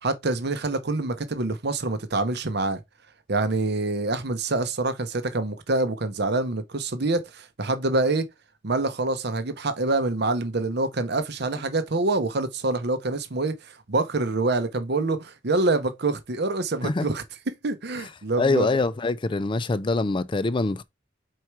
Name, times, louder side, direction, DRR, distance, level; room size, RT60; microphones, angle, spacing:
voice 1, 0.0-2.8 3.3-8.3 8.6-17.2 17.6-18.7, right 2 dB, 60° right, 0.9 m, -26 dB
voice 2, 18.4-20.8, left 3 dB, 25° left, 0.4 m, -24 dB
4.8 x 4.3 x 4.7 m
head